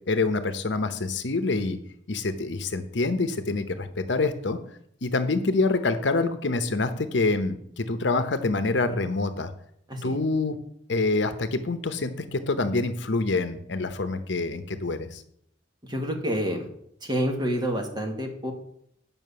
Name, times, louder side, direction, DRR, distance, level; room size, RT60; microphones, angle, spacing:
voice 1, 0.1-1.8 2.1-4.6 5.0-9.5 10.0-10.6 10.9-15.2, left 3 dB, 70° left, 10 dB, 0.9 m, -26 dB
voice 2, 15.8-16.7 17.0-18.5, equal, 25° right, 2 dB, 1.7 m, -28 dB
9.3 x 5.7 x 6.9 m, 0.70 s
head